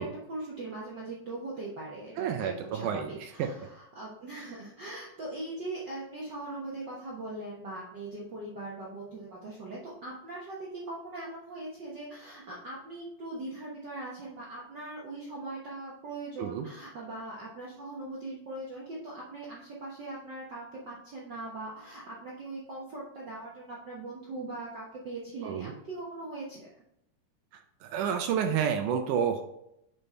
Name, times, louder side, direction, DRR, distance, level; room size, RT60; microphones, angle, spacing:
voice 1, 0.0-26.7, right 2 dB, 60° right, -5 dB, 1.1 m, -40 dB
voice 2, 2.2-3.5 16.4-16.7 25.4-25.7 27.8-29.4, right 8 dB, 80° right, 5 dB, 2.1 m, -30 dB
7.0 x 5.0 x 4.3 m, 0.78 s
omnidirectional pair, 3.7 m